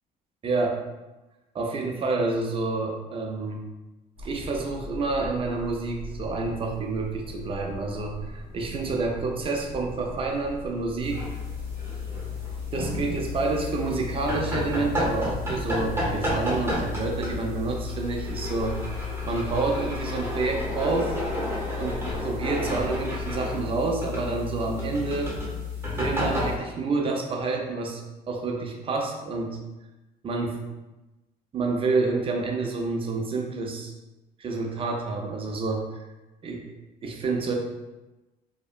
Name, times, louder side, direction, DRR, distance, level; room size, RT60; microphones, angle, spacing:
voice 1, 0.4-0.8 1.5-3.7 4.2-11.2 12.7-18.8 19.2-21.2 21.8-25.3 26.0-28.0 28.3-29.6 30.2-30.6 31.5-33.9 34.4-36.0 36.4-36.7 37.0-37.5, right 3 dB, 35° right, 1 dB, 0.5 m, -28 dB
sound 1, 4.2-23.4, left 1 dB, 75° left, 1.1 m, -42 dB
sound 2, 11.0-26.6, left 2 dB, 15° right, 0.8 m, -31 dB
2.8 x 2.0 x 2.4 m, 1.1 s
cardioid pair, 110°, 17 cm